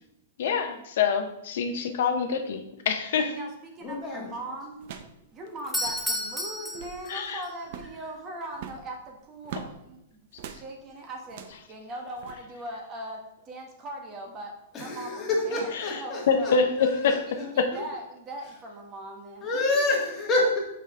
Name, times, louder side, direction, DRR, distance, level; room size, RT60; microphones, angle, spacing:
voice 1, 0.4-3.3 7.1-7.4 16.3-16.7 17.0-17.2, left 6 dB, 65° left, 6 dB, 0.6 m, -25 dB
voice 2, 3.2-4.8 5.3-14.5 14.8-16.5 17.3-19.8, right 1 dB, 25° right, 2 dB, 1.0 m, -40 dB
voice 3, 3.8-4.2 14.7-17.2 17.7-17.8 19.4-20.6, left 2 dB, 20° left, -2 dB, 1.6 m, -28 dB
sound 1, 3.8-4.1 4.8-5.2 5.5-5.6 5.7-6.1 6.6-7.0 7.6-8.0 8.5-9.8 10.4-10.7 11.2-11.6 12.2-12.4, right 8 dB, 50° right, 0.5 m, -42 dB
Doorbell, 5.6-7.5, left 1 dB, ahead, 0.8 m, -32 dB
5.6 x 4.8 x 3.5 m, 0.85 s
hypercardioid pair, 150°, 0 cm